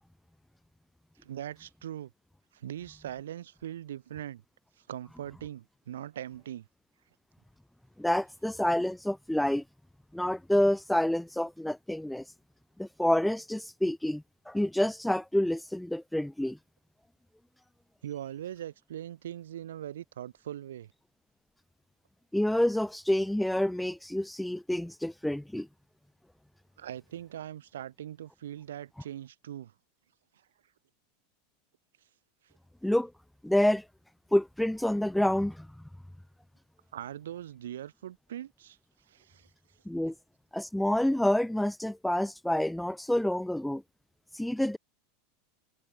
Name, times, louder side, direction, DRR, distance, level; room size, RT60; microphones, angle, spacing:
voice 1, 1.2-2.1 2.5-4.4 4.9-6.7 18.0-20.9 26.8-29.7 36.9-38.8 39.1-39.5, right 11 dB, 85° right, 2.2 m, -41 dB
voice 2, 8.0-9.6 10.1-12.2 12.8-16.6 22.3-25.7 32.8-33.1 33.4-33.8 34.3-35.7 39.9-40.1 40.5-43.8 44.3-44.8, left 1 dB, 5° left, 0.5 m, -28 dB
hypercardioid pair, 105°, 0 cm